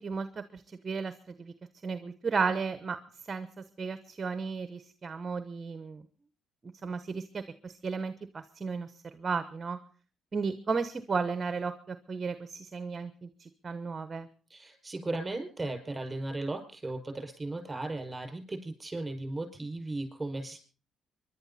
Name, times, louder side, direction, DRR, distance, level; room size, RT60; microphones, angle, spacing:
voice 1, 0.0-1.5 1.8-3.0 3.3-6.0 6.6-9.8 10.3-14.3, right 5 dB, 35° right, 12 dB, 1.0 m, -34 dB
voice 2, 14.5-20.6, right 2 dB, 20° right, 6 dB, 5.5 m, -36 dB
25.0 x 11.5 x 4.2 m, 0.39 s
cardioid pair, 90°, 0 cm